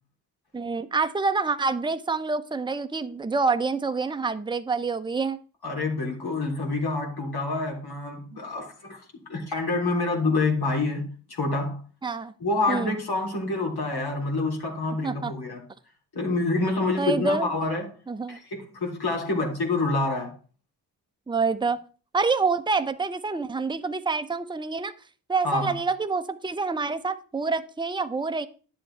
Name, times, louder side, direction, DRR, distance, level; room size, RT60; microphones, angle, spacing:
voice 1, 0.5-5.4 12.0-12.3 12.7-12.9 15.0-15.3 17.0-17.5 18.1-18.4 21.3-21.8 22.1-24.9 25.3-28.5, right 4 dB, 10° right, 0.8 m, -27 dB
voice 2, 5.6-9.0 9.3-11.8 12.4-15.6 16.1-17.9 18.3-20.4 25.4-25.8, left 3 dB, 50° left, 3.5 m, -27 dB
10.5 x 7.7 x 3.4 m
hypercardioid pair, 45°, 48 cm